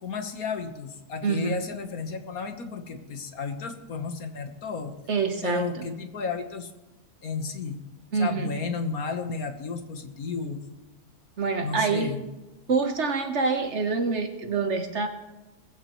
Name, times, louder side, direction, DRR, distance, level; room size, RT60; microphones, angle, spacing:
voice 1, 0.0-4.9 5.4-6.7 7.2-7.8 8.2-10.6 11.6-12.3, left 5 dB, 70° left, 6 dB, 1.6 m, -33 dB
voice 2, 1.2-1.6 5.1-5.7 8.1-8.5 11.4-12.1 12.7-15.1, right 4 dB, 50° right, 6 dB, 1.3 m, -26 dB
19.5 x 15.0 x 3.1 m, 1.0 s
omnidirectional pair, 1.6 m